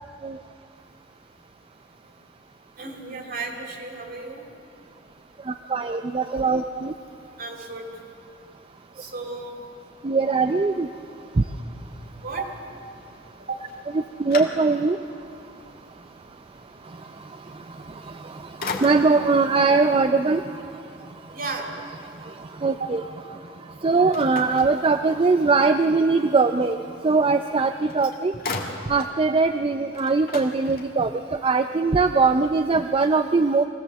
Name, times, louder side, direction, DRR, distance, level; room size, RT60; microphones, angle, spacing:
voice 1, 2.8-4.5 7.4-7.9 9.0-9.6 12.2-12.5 13.5-13.7 21.3-21.7, right 3 dB, 50° right, 2 dB, 2.7 m, -33 dB
voice 2, 5.7-6.6 10.0-10.9 14.2-15.0 18.8-20.4 22.6-23.0 23.8-26.8 27.0-28.3 28.9-31.1 31.4-33.6, right 4 dB, 30° right, 8 dB, 0.4 m, -20 dB
sound 1, 13.7-15.1 15.6-15.7 18.0-18.3 18.6-19.4 24.1-25.4 27.5-27.6 27.9-29.2 29.6-29.7 29.9-31.2, left 3 dB, 50° left, 2.0 m, -35 dB
24.0 x 16.5 x 7.4 m, 2.5 s
head